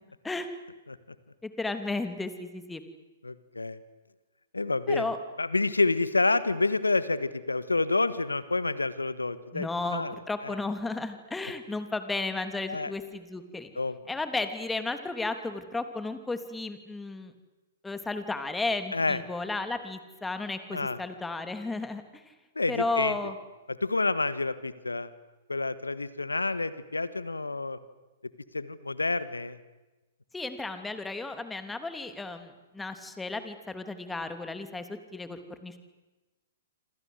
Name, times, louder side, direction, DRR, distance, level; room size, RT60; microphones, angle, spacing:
voice 1, 1.4-2.8 4.9-5.2 9.5-13.7 14.1-17.3 17.8-22.3 22.7-23.3 30.3-35.8, left 3 dB, 10° left, 9 dB, 3.0 m, -34 dB
voice 2, 3.2-3.8 4.5-5.1 5.4-10.2 10.4-10.6 12.7-12.9 13.7-14.0 18.9-19.2 20.7-21.0 22.5-23.1 23.7-25.1 25.5-27.8 28.5-29.6, left 3 dB, 85° left, 15 dB, 1.7 m, -28 dB
27.0 x 27.0 x 8.1 m, 1.1 s
figure-of-eight pair, 115°, 0 cm